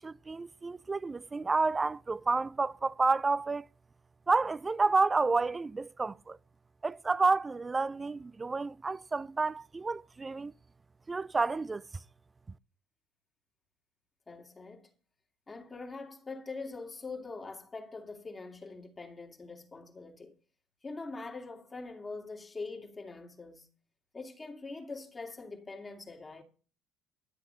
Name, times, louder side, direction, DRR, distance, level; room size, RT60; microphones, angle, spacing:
voice 1, 0.0-3.7 4.3-6.4 6.8-10.5 11.1-11.8, right 3 dB, 20° right, 0.4 m, -30 dB
voice 2, 14.3-14.9 15.5-20.4 20.8-23.7 24.1-26.4, left 3 dB, 20° left, 2.2 m, -43 dB
12.5 x 7.8 x 5.6 m
hypercardioid pair, 75°, 0 cm